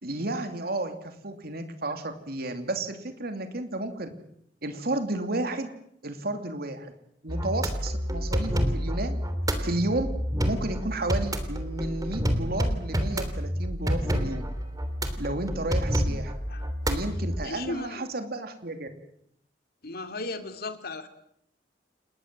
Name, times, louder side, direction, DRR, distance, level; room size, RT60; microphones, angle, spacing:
voice 1, 0.0-4.1 4.6-5.7 6.0-6.9 7.2-9.2 9.6-10.1 10.5-14.5 15.2-16.3 16.9-18.9, right 2 dB, 60° right, 7 dB, 2.9 m, -32 dB
sound 1, 7.3-17.5, equal, 20° right, 3.3 m, -29 dB
voice 2, 17.4-18.1 19.8-21.1, left 2 dB, 60° left, 8 dB, 2.8 m, -36 dB
29.0 x 21.0 x 7.7 m, 0.73 s
head